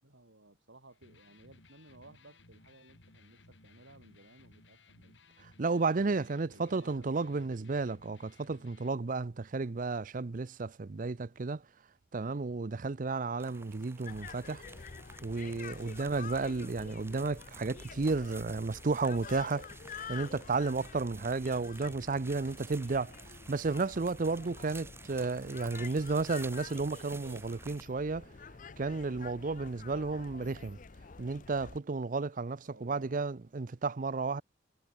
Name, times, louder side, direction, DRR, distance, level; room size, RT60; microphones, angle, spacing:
voice 1, 0.0-5.2 6.0-7.7 32.6-33.3, right 2 dB, 80° right, 5.7 m, -58 dB
Electric guitar, 0.9-8.9, left 2 dB, 80° left, 3.5 m, -60 dB
voice 2, 5.4-11.6 12.1-14.6 15.2-19.7 20.1-23.1 23.5-28.3 28.8-30.8 31.2-34.4, right 3 dB, 45° right, 0.5 m, -33 dB
sound 1, 13.4-27.8, right 3 dB, 15° right, 2.0 m, -52 dB
sound 2, 14.0-31.8, left 5 dB, 45° left, 0.7 m, -48 dB
head